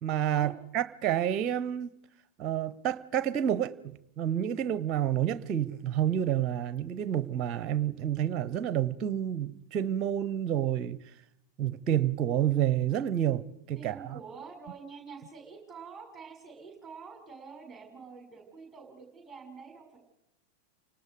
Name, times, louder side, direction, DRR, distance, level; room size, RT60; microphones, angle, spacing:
voice 1, 0.0-1.9 2.4-11.0 11.6-14.2, right 10 dB, 35° right, 0.9 m, -29 dB
voice 2, 13.8-20.0, right 5 dB, 10° right, 6.3 m, -47 dB
29.5 x 19.0 x 4.9 m
figure-of-eight pair, 90°, 0 cm